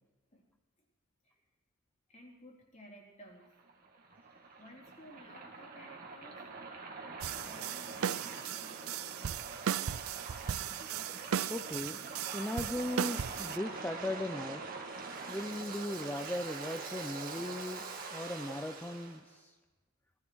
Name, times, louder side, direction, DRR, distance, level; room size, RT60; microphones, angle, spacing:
voice 1, 2.1-3.5 4.6-6.4 7.4-9.5, equal, 35° left, -1 dB, 4.0 m, -55 dB
Waves surf, 3.4-19.2, right 4 dB, 40° right, 2.2 m, -44 dB
sound 1, 7.2-13.6, right 8 dB, 65° right, 0.5 m, -37 dB
voice 2, 11.5-12.0 12.3-14.7 15.3-17.8 18.1-19.6, left 1 dB, 10° left, 7 dB, 0.5 m, -38 dB
19.5 x 15.5 x 4.7 m, 1.3 s
head